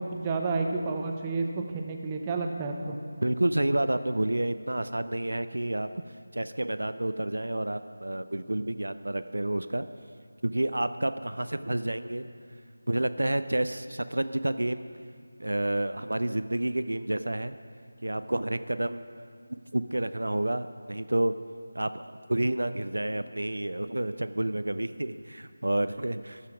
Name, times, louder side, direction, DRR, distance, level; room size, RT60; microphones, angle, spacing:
voice 1, 0.0-1.5 1.7-3.0, right 3 dB, 20° right, 3 dB, 0.6 m, -30 dB
voice 2, 3.2-5.9 6.3-9.9 10.4-12.3 12.9-14.9 15.4-17.6 18.0-19.0 19.7-21.3 21.7-26.4, right 1 dB, 75° right, 11 dB, 0.4 m, -29 dB
13.5 x 5.7 x 6.0 m, 2.3 s
figure-of-eight pair, 165°, 0 cm